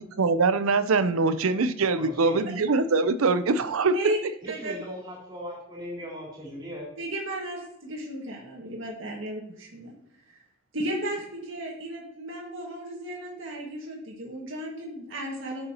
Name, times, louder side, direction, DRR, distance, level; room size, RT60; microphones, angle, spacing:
voice 1, 0.2-4.1, right 4 dB, 85° right, 12 dB, 0.6 m, -23 dB
voice 2, 2.0-2.4 4.4-6.9, equal, 20° right, -4 dB, 2.9 m, -38 dB
voice 3, 7.0-9.9 10.3-10.4 10.7-15.7, right 1 dB, 70° right, -2 dB, 1.9 m, -34 dB
10.5 x 6.8 x 2.9 m, 0.80 s
head